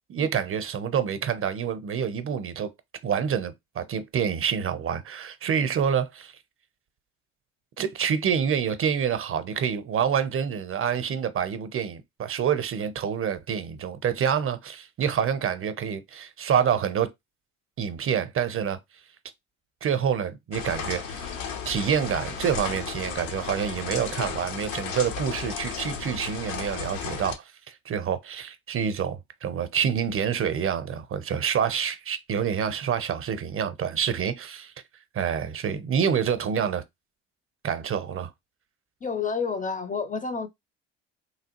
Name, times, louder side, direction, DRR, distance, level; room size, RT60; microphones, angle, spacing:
voice 1, 0.1-2.7 3.0-6.3 7.8-17.1 17.8-18.8 19.8-21.3 21.7-34.7 35.1-36.8 37.6-38.3, right 8 dB, 35° right, 0.6 m, -27 dB
sound 1, 20.5-27.3, left 6 dB, 80° left, 0.8 m, -34 dB
voice 2, 39.0-40.5, left 5 dB, 20° left, 0.5 m, -30 dB
3.1 x 2.3 x 2.9 m
hypercardioid pair, 65°, 36 cm